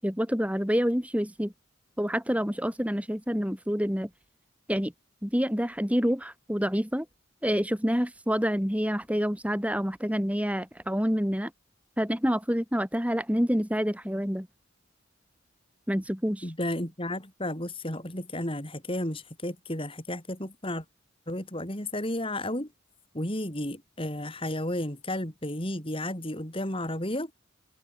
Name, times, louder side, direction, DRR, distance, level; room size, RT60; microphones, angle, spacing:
voice 1, 0.0-1.5 2.0-4.1 4.7-4.9 5.2-7.0 7.4-11.5 12.0-14.5 15.9-16.5, equal, 5° right, 3.4 m, -27 dB
voice 2, 16.4-20.8 21.3-22.7 23.1-27.3, left 1 dB, 25° left, 5.1 m, -32 dB
head